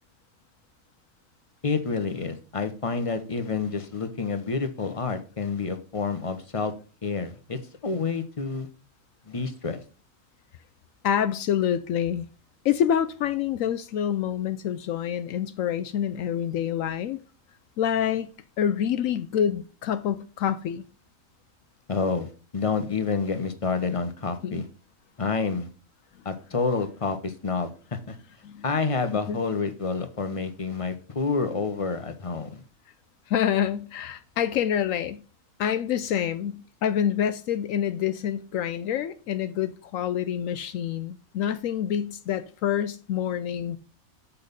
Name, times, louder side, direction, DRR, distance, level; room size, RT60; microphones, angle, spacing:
voice 1, 1.6-6.7 7.0-8.7 9.3-9.8 21.9-24.6 25.2-25.7 26.2-28.2 28.6-32.6, left 4 dB, 30° left, 0.9 m, -28 dB
voice 2, 11.0-12.2 12.6-17.2 17.8-20.8 24.4-24.6 28.4-28.6 29.3-29.4 33.3-35.2 35.6-43.8, left 9 dB, 75° left, 1.0 m, -27 dB
7.1 x 6.3 x 5.3 m
omnidirectional pair, 1.4 m